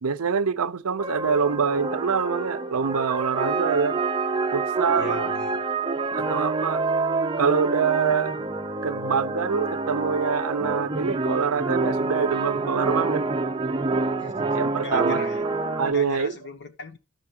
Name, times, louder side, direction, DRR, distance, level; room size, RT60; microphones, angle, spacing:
voice 1, 0.0-4.0 4.5-5.3 5.8-6.8 7.4-8.4 8.8-13.3 14.5-15.2 15.7-16.3, right 6 dB, 80° right, 0.6 m, -25 dB
sound 1, 1.0-15.9, right 3 dB, 25° right, 0.6 m, -27 dB
voice 2, 5.0-5.6 14.2-15.5 15.8-17.0, left 3 dB, 55° left, 1.3 m, -39 dB
13.0 x 4.8 x 6.1 m
head